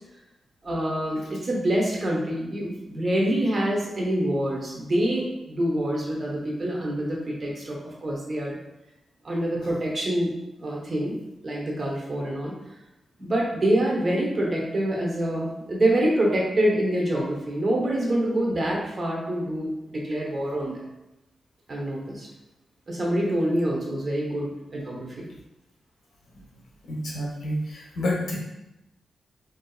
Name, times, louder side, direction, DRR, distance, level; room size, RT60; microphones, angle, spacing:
voice 1, 0.6-8.6 9.2-10.3 10.6-11.1 11.4-12.5 13.2-20.7 21.7-22.3 22.9-25.3, right 1 dB, 40° right, -2 dB, 0.8 m, -26 dB
voice 2, 26.9-28.3, left 1 dB, 80° left, -3 dB, 0.8 m, -29 dB
3.7 x 2.7 x 2.3 m, 0.93 s
cardioid pair, 95°, 0 cm